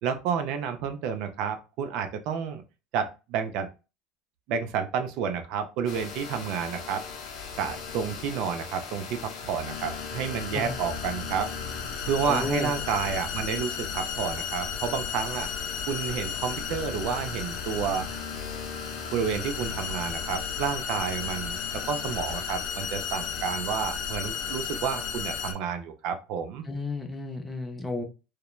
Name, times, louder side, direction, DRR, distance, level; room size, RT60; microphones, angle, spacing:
voice 1, 0.0-2.6 2.9-3.7 4.5-7.0 7.6-11.5 12.1-15.5 15.9-18.1 19.1-21.6 21.9-26.7, right 7 dB, 55° right, 0.4 m, -30 dB
sound 1, 5.9-25.5, left 6 dB, 50° left, 0.7 m, -34 dB
voice 2, 12.2-12.7 26.6-28.0, left 3 dB, 10° left, 0.4 m, -32 dB
3.0 x 2.1 x 2.2 m
cardioid pair, 155°, 0 cm